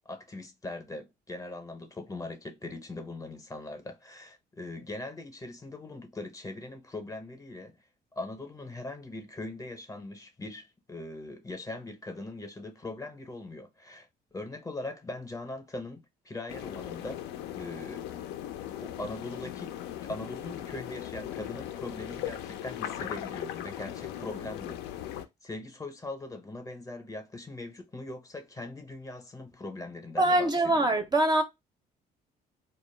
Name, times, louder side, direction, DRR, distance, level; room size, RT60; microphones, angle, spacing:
voice 1, 0.1-7.8 8.2-17.2 17.5-18.0 18.8-19.8 20.0-24.8 25.4-30.9, left 2 dB, 20° left, 0.6 m, -41 dB
sound 1, 16.5-25.3, left 11 dB, 90° left, 0.4 m, -38 dB
voice 2, 30.2-31.4, right 1 dB, 25° right, 0.4 m, -23 dB
2.2 x 2.0 x 3.1 m
cardioid pair, 110°, 17 cm